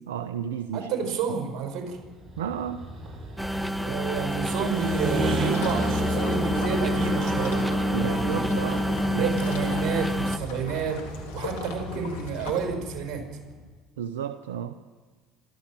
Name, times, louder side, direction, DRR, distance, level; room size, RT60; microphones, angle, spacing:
voice 1, 0.0-0.9 2.4-2.8 7.9-9.5 14.0-14.8, right 9 dB, 85° right, 11 dB, 0.7 m, -32 dB
voice 2, 0.7-2.0 3.8-8.6 9.1-11.0 11.3-13.2, right 5 dB, 60° right, 4 dB, 5.8 m, -30 dB
sound 1, 1.9-13.5, right 1 dB, 30° right, 7.4 m, -33 dB
sound 2, 3.4-10.4, equal, 5° right, 1.0 m, -28 dB
sound 3, 5.5-12.6, left 5 dB, 80° left, 3.5 m, -39 dB
27.0 x 13.0 x 7.5 m, 1.4 s
hypercardioid pair, 65°, 0 cm